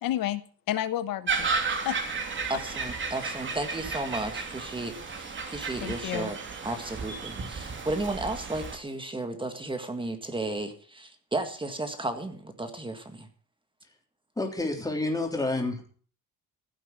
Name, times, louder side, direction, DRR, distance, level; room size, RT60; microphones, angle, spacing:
voice 1, 0.0-2.0 2.5-2.6 5.8-6.3, left 12 dB, 80° left, 13 dB, 1.2 m, -31 dB
sound 1, 1.3-8.8, right 4 dB, 35° right, 2.9 m, -33 dB
voice 2, 2.5-6.4 6.6-13.3, right 2 dB, 15° right, 7 dB, 1.9 m, -34 dB
voice 3, 14.4-15.9, left 2 dB, 10° left, 2 dB, 3.5 m, -29 dB
15.5 x 7.7 x 7.7 m, 0.44 s
cardioid pair, 135°, 34 cm